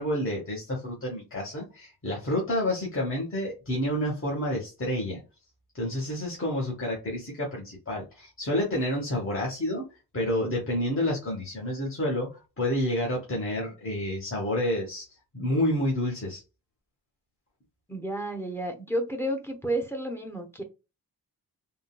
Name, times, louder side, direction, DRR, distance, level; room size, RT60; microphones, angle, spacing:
voice 1, 0.0-5.2 5.7-9.8 10.1-15.0 15.3-16.4, left 1 dB, 35° left, 1.1 m, -29 dB
voice 2, 17.9-20.6, right 1 dB, 5° left, 0.7 m, -31 dB
3.7 x 2.2 x 2.3 m
wide cardioid pair, 125°, 38 cm